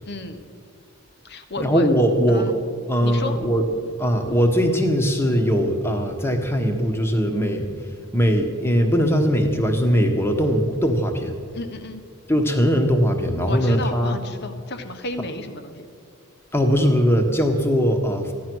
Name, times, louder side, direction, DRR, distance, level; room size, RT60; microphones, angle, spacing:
voice 1, 0.1-0.4 1.2-1.9 2.3-2.6 3.0-3.3 11.5-12.0 13.5-15.8, left 2 dB, 50° left, 8 dB, 1.1 m, -32 dB
voice 2, 1.6-2.5 2.9-7.7 8.1-11.3 12.3-14.2 16.5-18.3, equal, 10° left, 4 dB, 1.2 m, -20 dB
15.0 x 10.5 x 6.2 m, 2.2 s
head